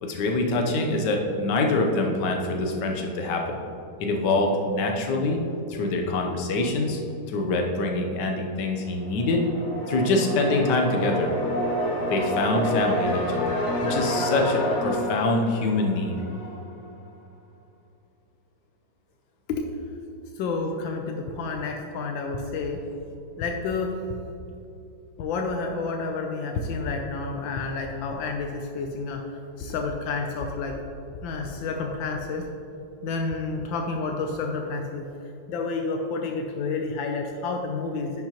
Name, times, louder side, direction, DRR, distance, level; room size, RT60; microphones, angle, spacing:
voice 1, 0.0-3.6 4.0-5.4 5.7-7.0 7.3-9.4 9.9-11.3 12.1-16.1, left 2 dB, 65° left, 1 dB, 1.4 m, -25 dB
sound 1, 8.9-16.7, equal, 50° left, 1.0 m, -28 dB
voice 2, 20.4-22.8 23.4-23.9 25.2-29.2 29.6-30.8 31.2-32.5 33.0-35.1 35.5-38.2, left 4 dB, 85° left, 3 dB, 1.4 m, -29 dB
10.5 x 5.9 x 2.9 m, 2.7 s
omnidirectional pair, 2.1 m